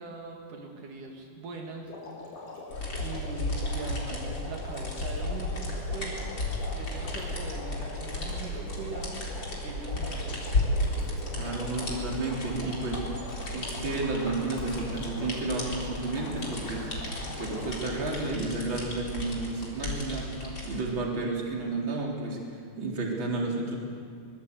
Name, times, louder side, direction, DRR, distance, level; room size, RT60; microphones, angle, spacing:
voice 1, 0.0-1.9 3.0-6.3 6.8-9.2 9.6-10.5 19.8-20.8, right 3 dB, 80° right, 1 dB, 3.8 m, -41 dB
sound 1, 1.8-18.3, left 3 dB, 75° left, 5.8 m, -43 dB
sound 2, 2.7-20.8, left 1 dB, 35° left, 4.5 m, -34 dB
voice 2, 11.3-13.1 13.5-16.9 17.2-20.2 20.6-23.8, right 3 dB, 40° right, -2 dB, 4.3 m, -32 dB
23.5 x 20.5 x 8.2 m, 2.2 s
omnidirectional pair, 3.6 m